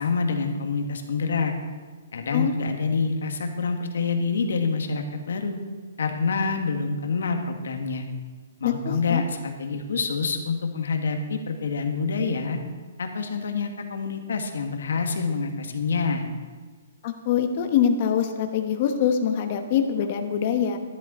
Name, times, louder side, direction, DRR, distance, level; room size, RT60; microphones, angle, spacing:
voice 1, 0.0-1.5 2.1-5.6 6.0-8.0 8.6-12.6 13.0-16.2, left 4 dB, 90° left, 5 dB, 1.7 m, -27 dB
voice 2, 2.3-2.7 8.6-9.2 17.0-20.8, left 8 dB, 30° left, 6 dB, 1.0 m, -24 dB
13.5 x 11.5 x 4.3 m, 1.4 s
hypercardioid pair, 175°, 0 cm